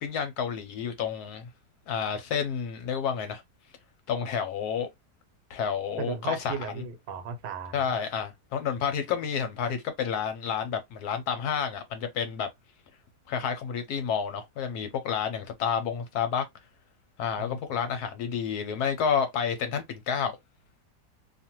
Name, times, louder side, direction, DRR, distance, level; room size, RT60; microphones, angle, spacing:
voice 1, 0.0-1.4 1.9-3.4 4.1-4.9 5.5-6.8 7.7-12.5 13.3-16.5 17.2-20.4, left 7 dB, 70° left, 1.1 m, -30 dB
voice 2, 6.0-7.9 17.4-17.6, right 5 dB, 80° right, 1.3 m, -36 dB
2.7 x 2.4 x 2.8 m
omnidirectional pair, 1.9 m